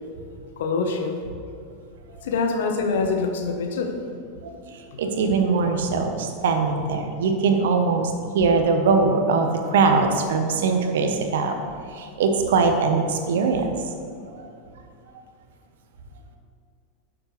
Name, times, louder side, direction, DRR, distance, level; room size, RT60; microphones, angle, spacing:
voice 1, 0.6-1.2 2.2-4.0, left 4 dB, 75° left, 5 dB, 1.0 m, -25 dB
voice 2, 4.4-11.6 11.9-13.8 14.3-14.5, right 4 dB, 70° right, 5 dB, 1.0 m, -22 dB
10.5 x 7.3 x 3.3 m, 2.4 s
hypercardioid pair, 95°, 0 cm